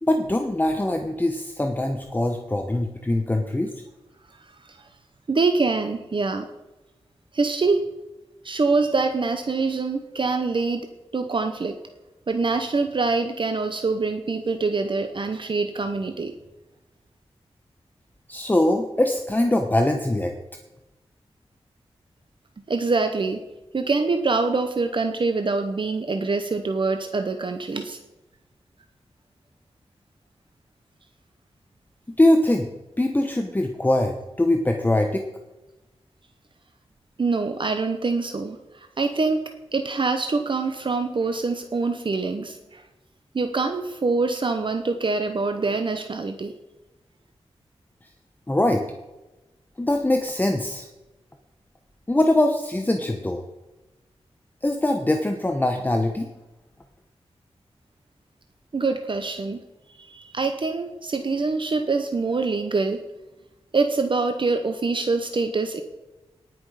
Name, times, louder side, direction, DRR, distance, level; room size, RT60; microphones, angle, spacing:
voice 1, 0.0-3.7 18.3-20.3 32.2-32.7 33.0-35.2 48.5-48.8 49.8-50.9 52.1-53.4 54.6-56.3, left 1 dB, 15° left, 4 dB, 1.0 m, -22 dB
voice 2, 5.3-6.5 7.3-7.9 8.4-10.8 11.1-11.8 12.3-16.3 22.7-23.4 23.7-28.0 37.2-39.4 39.7-42.8 43.3-46.5 58.7-59.6 60.0-63.0 63.7-65.8, right 3 dB, 50° right, 7 dB, 0.9 m, -25 dB
18.0 x 6.2 x 4.9 m, 1.0 s
wide cardioid pair, 90°, 11 cm